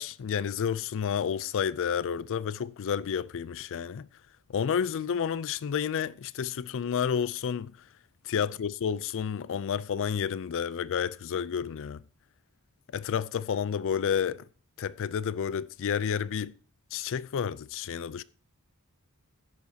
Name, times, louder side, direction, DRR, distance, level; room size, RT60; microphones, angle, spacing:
voice 1, 0.0-4.1 4.5-7.7 8.2-12.0 12.9-14.4 14.8-16.5 16.9-18.2, left 7 dB, 60° left, 0.4 m, -30 dB
10.5 x 10.5 x 2.8 m
head